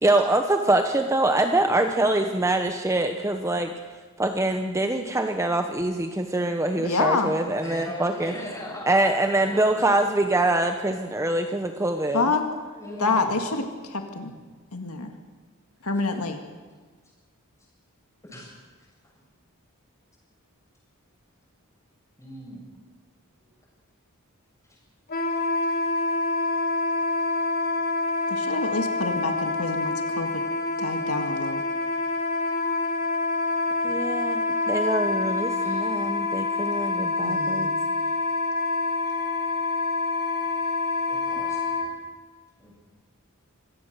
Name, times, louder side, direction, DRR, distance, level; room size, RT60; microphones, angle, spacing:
voice 1, 0.0-3.7 4.2-8.3 8.9-12.2 33.8-37.7, right 2 dB, 15° right, 6 dB, 0.9 m, -24 dB
voice 2, 6.8-7.3 12.1-12.4 13.0-14.3 14.7-15.1 15.8-16.4 28.3-30.4 30.8-31.6 37.2-37.7, left 3 dB, 85° left, 5 dB, 2.0 m, -27 dB
voice 3, 7.6-10.0 12.7-13.3 18.2-18.5 22.2-22.6 24.7-24.8 35.6-35.8 37.1-37.3 38.7-38.8 41.0-41.9 42.6-42.8, left 1 dB, 15° left, -2 dB, 7.5 m, -39 dB
Wind instrument woodwind instrument, 25.1-41.9, left 3 dB, 45° left, 3.5 m, -26 dB
25.0 x 17.0 x 6.7 m, 1.4 s
head